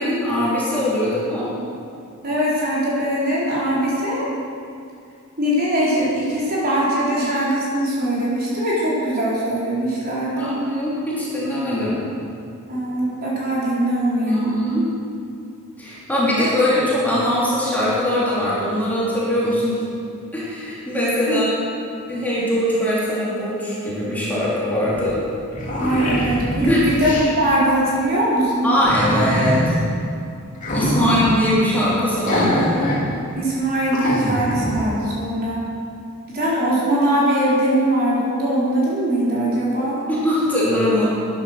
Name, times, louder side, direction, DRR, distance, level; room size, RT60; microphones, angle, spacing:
voice 1, 0.0-1.5 7.2-7.3 10.4-12.0 14.3-14.9 15.8-19.8 20.3-21.5 22.1-25.2 26.7-26.8 28.6-29.7 30.7-32.7 40.1-41.0, left 1 dB, 10° left, -8 dB, 3.2 m, -21 dB
voice 2, 2.2-4.3 5.4-10.5 12.7-14.6 21.3-21.5 25.8-28.7 31.0-31.2 33.3-35.6 36.3-39.9, right 1 dB, 45° right, -7 dB, 4.1 m, -21 dB
sound 1, 25.0-25.1 25.3-27.3 28.8-29.7 30.6-31.3 32.3-33.0 33.4-33.5 33.9-34.8, equal, 35° left, 2.7 m, -23 dB
11.5 x 10.5 x 6.7 m, 2.4 s
head